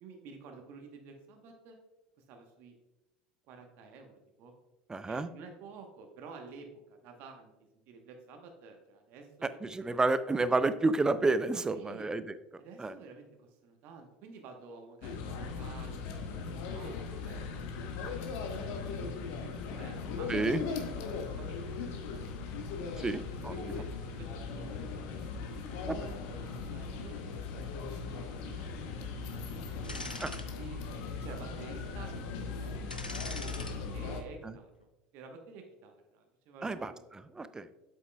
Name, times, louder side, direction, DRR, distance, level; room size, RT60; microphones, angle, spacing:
voice 1, 0.0-1.8 2.2-2.7 3.5-4.5 5.0-7.5 7.9-9.3 9.8-10.0 11.7-12.1 12.6-16.4 16.6-17.4 17.9-18.3 18.8-22.3 23.0-25.2 25.5-27.2 27.7-27.9 28.2-29.3 29.8-30.8 31.2-33.4 33.9-34.9 35.1-37.1, right 4 dB, 50° right, 4 dB, 1.0 m, -51 dB
voice 2, 4.9-5.3 9.6-12.2 12.8-12.9 20.3-20.6 23.0-23.5 25.9-26.0 30.2-30.3 36.6-37.7, right 3 dB, 15° right, 13 dB, 0.5 m, -30 dB
sound 1, 15.0-34.2, left 4 dB, 55° left, 0.9 m, -39 dB
sound 2, 29.8-30.5 30.9-31.0 32.9-33.7 34.1-34.3, left 2 dB, 90° left, 0.6 m, -42 dB
8.2 x 7.5 x 2.2 m, 1.0 s
figure-of-eight pair, 70°, 5 cm